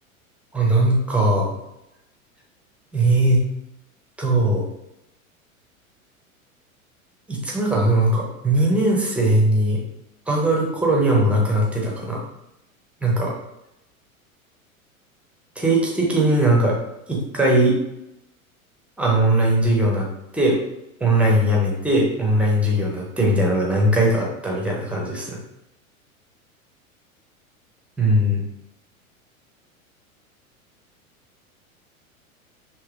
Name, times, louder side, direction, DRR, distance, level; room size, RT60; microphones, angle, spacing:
voice 1, 0.5-1.5 2.9-3.4 4.2-4.7 7.3-9.8 10.3-12.2 13.0-13.3 15.6-16.7 17.1-17.7 19.0-20.1 20.3-20.6 21.0-25.4 28.0-28.4, right 1 dB, 5° right, -2 dB, 0.4 m, -19 dB
3.7 x 2.6 x 2.3 m, 0.87 s
figure-of-eight pair, 90°, 42 cm